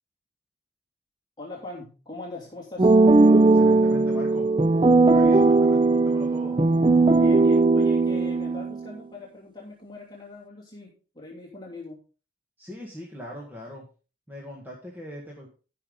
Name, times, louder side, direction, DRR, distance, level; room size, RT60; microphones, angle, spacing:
voice 1, 1.4-2.9 7.1-12.0, left 2 dB, 20° left, -4 dB, 2.8 m, -40 dB
sound 1, 2.8-8.8, right 3 dB, 25° right, 0.4 m, -18 dB
voice 2, 3.4-4.5 5.1-6.6 12.6-13.8 14.3-15.5, equal, 10° right, -2 dB, 1.7 m, -40 dB
14.5 x 6.0 x 3.8 m, 0.36 s
head